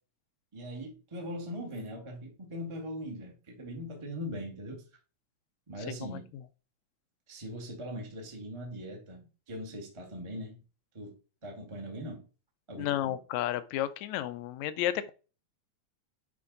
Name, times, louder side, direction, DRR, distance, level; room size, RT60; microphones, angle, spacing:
voice 1, 0.5-4.8 5.7-6.3 7.3-10.6 10.9-11.1 11.4-12.2 12.7-13.1, equal, 20° right, 0.8 m, -40 dB
voice 2, 5.9-6.2 12.8-15.1, left 12 dB, 80° left, 1.9 m, -32 dB
9.7 x 3.4 x 3.9 m
omnidirectional pair, 3.3 m